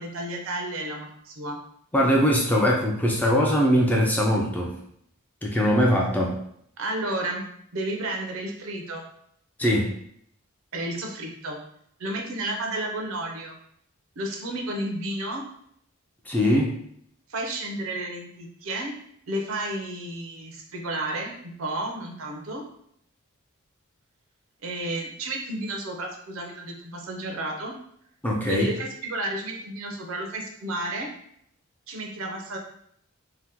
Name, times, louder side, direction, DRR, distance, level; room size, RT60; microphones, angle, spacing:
voice 1, 0.0-1.6 6.8-7.5 7.7-9.1 10.7-11.6 12.0-13.6 14.2-15.5 17.3-19.0 19.3-22.6 24.6-27.7 28.5-31.1 31.9-32.6, right 1 dB, 65° right, 2 dB, 0.6 m, -32 dB
voice 2, 1.9-4.8 5.4-6.4 9.6-9.9 16.3-16.8 28.2-28.7, equal, 5° left, -2 dB, 0.3 m, -21 dB
2.8 x 2.1 x 3.4 m, 0.69 s
head